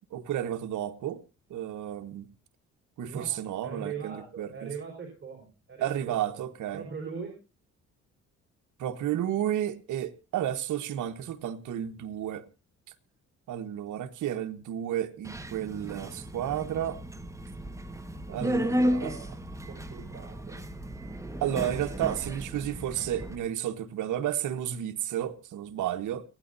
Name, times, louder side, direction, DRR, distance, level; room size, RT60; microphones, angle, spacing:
voice 1, 0.1-1.2 1.5-2.3 3.0-4.7 5.8-6.8 8.8-12.4 13.5-17.0 18.3-19.1 21.4-26.2, right 11 dB, 80° right, 1.4 m, -32 dB
voice 2, 3.0-3.4 3.6-6.5 6.7-7.4 18.3-19.3 19.7-20.6, right 5 dB, 40° right, 5.3 m, -41 dB
Subway metro underground, 15.2-23.4, equal, 10° right, 1.5 m, -34 dB
30.0 x 10.0 x 2.7 m
cardioid pair, 90°, 30 cm